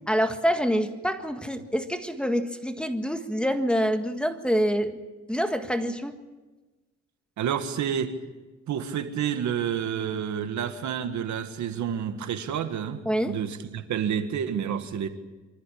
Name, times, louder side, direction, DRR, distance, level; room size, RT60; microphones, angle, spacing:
voice 1, 0.1-5.0 5.3-6.1 13.0-13.3, equal, 5° left, 7 dB, 1.6 m, -26 dB
voice 2, 7.4-8.1 8.7-15.1, right 8 dB, 70° right, 9 dB, 1.8 m, -29 dB
25.0 x 14.0 x 8.6 m, 1.2 s
cardioid pair, 90°, 30 cm